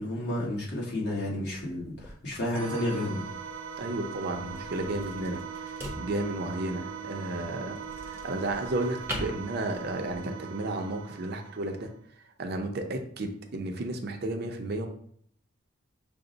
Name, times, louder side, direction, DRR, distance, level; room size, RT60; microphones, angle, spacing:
voice 1, 0.0-3.2, left 1 dB, 50° left, -5 dB, 1.4 m, -31 dB
sound 1, 1.4-10.2, equal, 10° right, 0.6 m, -43 dB
sound 2, 2.5-12.0, right 7 dB, 85° right, 0.6 m, -41 dB
voice 2, 3.8-11.9 12.4-14.9, right 2 dB, 50° right, 4 dB, 0.5 m, -33 dB
5.9 x 2.0 x 3.8 m, 0.62 s
head